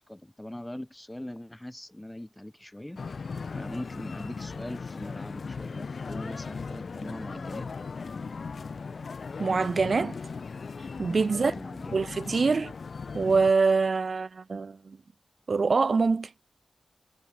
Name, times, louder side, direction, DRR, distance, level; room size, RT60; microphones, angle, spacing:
voice 1, 0.1-3.3 3.5-7.7 11.3-12.1, left 1 dB, 10° left, 0.8 m, -41 dB
sound 1, 3.0-13.5, left 5 dB, 65° left, 0.5 m, -38 dB
voice 2, 9.4-10.2 11.0-11.5 11.9-12.7 13.1-15.0 15.5-16.3, right 4 dB, 55° right, 0.3 m, -24 dB
cardioid pair, 65°, 0 cm